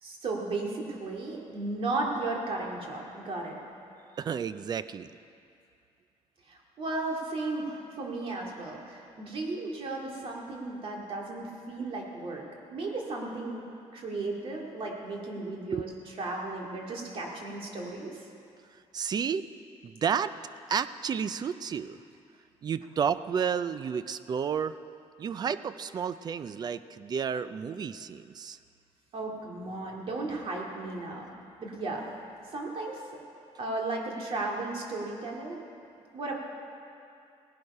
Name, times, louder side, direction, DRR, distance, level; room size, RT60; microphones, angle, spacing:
voice 1, 0.0-3.6 6.5-12.4 12.7-13.6 13.9-15.9 16.2-18.2 29.1-31.3 31.6-32.1 32.5-33.0 33.6-35.6 36.1-36.3, right 2 dB, 50° right, -1 dB, 2.3 m, -35 dB
voice 2, 4.2-5.1 15.7-15.8 18.9-19.4 19.8-20.3 20.7-22.0 22.6-24.8 25.2-28.6, right 7 dB, 35° right, 14 dB, 0.4 m, -31 dB
17.5 x 11.5 x 5.5 m, 2.5 s
cardioid pair, 140°, 12 cm